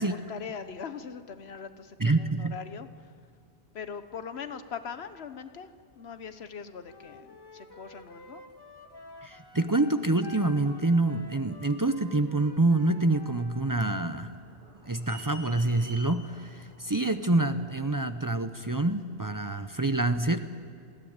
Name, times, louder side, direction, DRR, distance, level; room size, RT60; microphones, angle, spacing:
voice 1, 0.0-2.9 3.7-8.4, left 6 dB, 85° left, 10 dB, 1.2 m, -41 dB
voice 2, 2.0-2.6 9.2-14.3 14.9-20.4, right 2 dB, 20° right, 8 dB, 0.7 m, -26 dB
Wind instrument woodwind instrument, 6.9-13.7, left 2 dB, 25° left, 1.2 m, -50 dB
sound 1, 13.5-19.0, right 1 dB, 70° right, 3.2 m, -51 dB
20.5 x 16.5 x 9.5 m, 2.3 s
omnidirectional pair, 1.0 m